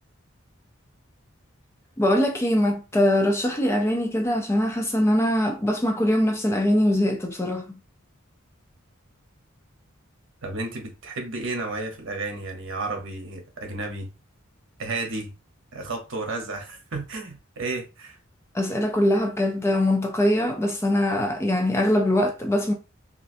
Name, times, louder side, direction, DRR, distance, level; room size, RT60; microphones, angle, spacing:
voice 1, 2.0-7.7 18.5-22.7, left 1 dB, 10° left, 0.4 m, -22 dB
voice 2, 10.4-14.1 14.8-15.3 15.7-18.2, right 3 dB, 65° right, 1.0 m, -32 dB
3.1 x 2.5 x 2.6 m
head